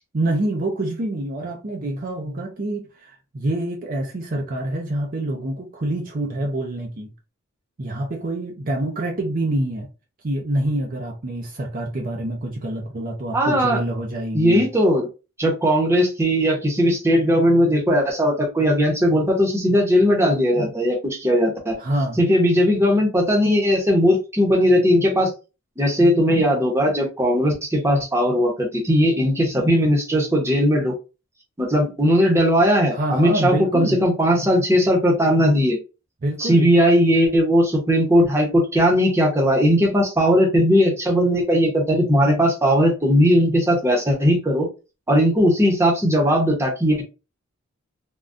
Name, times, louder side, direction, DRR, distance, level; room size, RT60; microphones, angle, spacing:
voice 1, 0.1-7.1 7.8-9.9 10.2-14.7 21.8-22.2 32.9-34.0 36.2-36.7, right 1 dB, 40° right, 0.5 m, -26 dB
voice 2, 13.3-13.8 14.3-15.1 15.4-21.8 22.2-25.3 25.8-30.9 31.6-35.8 36.4-44.7 45.1-47.0, equal, 15° right, 0.8 m, -18 dB
3.5 x 2.2 x 2.5 m
head